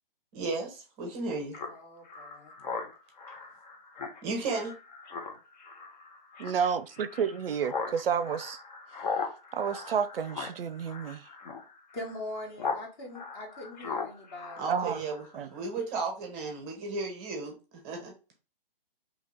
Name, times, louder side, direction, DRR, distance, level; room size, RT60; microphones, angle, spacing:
voice 1, 0.3-1.6 4.2-4.7 14.6-18.1, right 3 dB, 20° right, 0.6 m, -34 dB
Speech synthesizer, 1.5-12.8 13.1-15.4, left 4 dB, 45° left, 0.7 m, -39 dB
voice 2, 1.7-2.5 11.9-14.7, left 1 dB, 25° left, 1.0 m, -42 dB
voice 3, 6.4-8.6 9.5-11.2 14.7-15.0 15.3-15.5, right 7 dB, 75° right, 0.4 m, -30 dB
2.9 x 2.8 x 3.7 m
hypercardioid pair, 140°, 29 cm